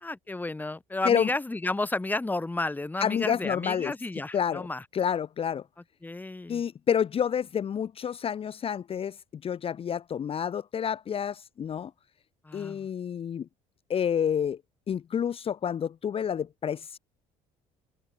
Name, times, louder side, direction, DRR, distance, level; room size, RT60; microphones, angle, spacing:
voice 1, 0.0-4.8 6.0-6.6 12.4-12.9, left 2 dB, 10° left, 1.7 m, -32 dB
voice 2, 3.0-3.9 4.3-4.7 4.9-5.6 6.5-11.9 12.5-13.5 13.9-14.6 14.9-17.0, left 8 dB, 40° left, 1.0 m, -29 dB
open air
supercardioid pair, 90°, 15 cm